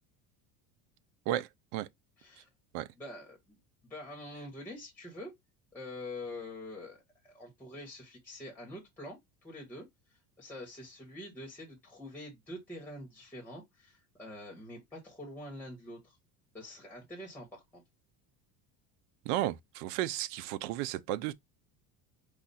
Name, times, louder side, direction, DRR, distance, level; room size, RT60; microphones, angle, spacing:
voice 1, 1.3-1.9 2.7-2.9 19.3-21.3, right 14 dB, 70° right, 0.6 m, -33 dB
voice 2, 2.2-2.5 2.9-3.6 3.8-5.3 5.7-16.2 16.5-17.8, left 1 dB, 5° left, 1.3 m, -46 dB
5.0 x 2.4 x 4.1 m
cardioid pair, 175°, 39 cm